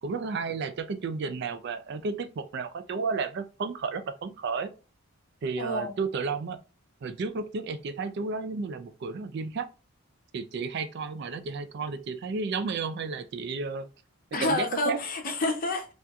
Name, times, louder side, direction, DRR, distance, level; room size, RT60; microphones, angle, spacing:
voice 1, 0.0-4.7 5.4-6.6 7.0-9.7 10.3-13.9 14.4-15.0, right 4 dB, 50° right, 0.3 m, -32 dB
voice 2, 5.6-6.0 14.3-15.9, left 2 dB, 40° left, 0.6 m, -29 dB
4.1 x 2.4 x 2.2 m
head